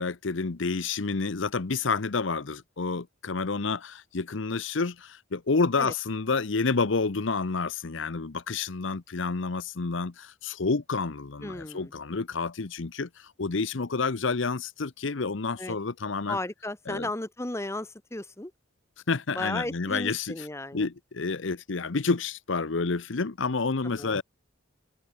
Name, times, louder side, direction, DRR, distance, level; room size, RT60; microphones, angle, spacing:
voice 1, 0.0-16.4 16.9-17.1 19.1-20.3 20.7-24.2, left 4 dB, 70° left, 0.8 m, -29 dB
voice 2, 11.4-11.9 15.6-15.8 16.3-18.5 19.3-20.9 23.8-24.2, left 2 dB, 15° left, 1.0 m, -35 dB
head